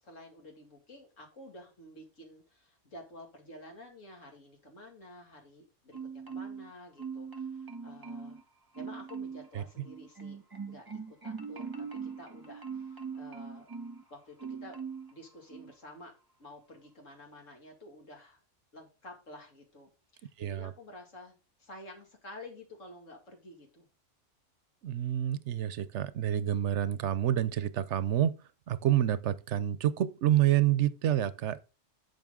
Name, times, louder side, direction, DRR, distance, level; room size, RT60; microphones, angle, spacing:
voice 1, 0.0-6.0 6.3-8.4 8.7-10.4 10.7-13.7 14.1-14.8 15.1-16.1 16.4-18.4 18.7-23.9, left 1 dB, 85° left, 2.8 m, -50 dB
Marimba xylophone, 5.9-6.7 7.0-8.4 8.7-9.5 9.9-14.0 14.4-15.1 15.5-15.7, right 5 dB, 20° right, 1.0 m, -41 dB
voice 2, 20.4-20.7 24.8-31.6, right 11 dB, 70° right, 0.9 m, -28 dB
10.5 x 6.7 x 3.7 m
omnidirectional pair, 1.3 m